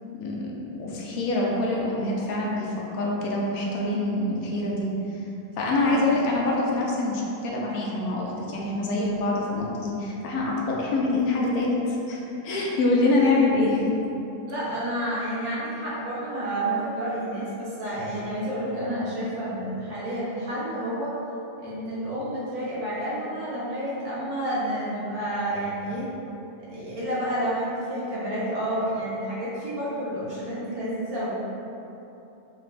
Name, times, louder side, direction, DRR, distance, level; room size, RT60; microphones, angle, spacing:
voice 1, 0.2-5.2 5.6-13.8, left 2 dB, 70° left, -3 dB, 1.0 m, -25 dB
voice 2, 14.5-21.1 21.6-26.1 26.7-31.3, right 1 dB, 70° right, -9 dB, 1.5 m, -30 dB
4.7 x 2.5 x 3.2 m, 2.9 s
omnidirectional pair, 1.7 m